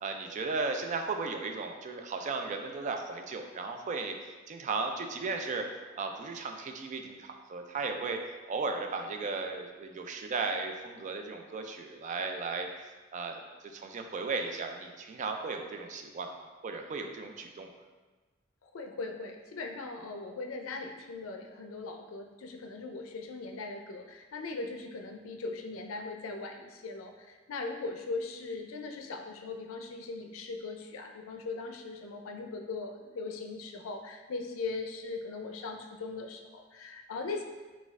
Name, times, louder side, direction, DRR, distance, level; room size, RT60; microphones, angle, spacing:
voice 1, 0.0-4.1 4.5-5.7 6.0-8.2 8.5-12.7 13.1-17.7, right 4 dB, 40° right, 4 dB, 0.3 m, -35 dB
voice 2, 18.6-37.4, left 3 dB, 80° left, 4 dB, 0.4 m, -39 dB
4.1 x 2.4 x 3.5 m, 1.3 s
head